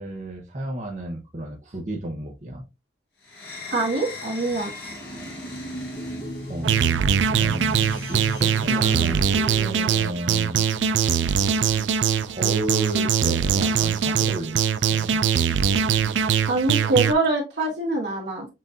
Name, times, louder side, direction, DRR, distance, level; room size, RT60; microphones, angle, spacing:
voice 1, 0.0-2.6 6.5-9.2 9.5-10.7 12.2-14.6 14.9-15.2, right 1 dB, 40° right, 0.8 m, -32 dB
sound 1, 3.3-9.9, left 1 dB, 60° left, 1.2 m, -35 dB
voice 2, 3.7-4.7 16.5-18.5, right 3 dB, 70° right, 1.8 m, -24 dB
sound 2, 6.6-17.1, right 7 dB, 90° right, 0.4 m, -22 dB
7.4 x 2.6 x 2.5 m
head